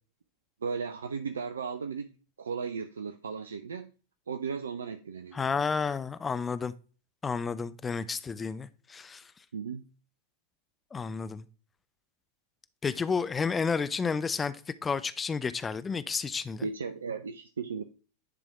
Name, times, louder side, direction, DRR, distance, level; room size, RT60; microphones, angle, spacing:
voice 1, 0.6-2.1 2.4-3.9 4.3-5.4 9.5-9.8 16.6-17.8, right 5 dB, 70° right, 0.4 m, -35 dB
voice 2, 5.3-6.7 7.2-9.3 10.9-11.4 12.8-16.6, left 5 dB, 15° left, 0.4 m, -31 dB
9.9 x 3.5 x 3.4 m
figure-of-eight pair, 90°, 0 cm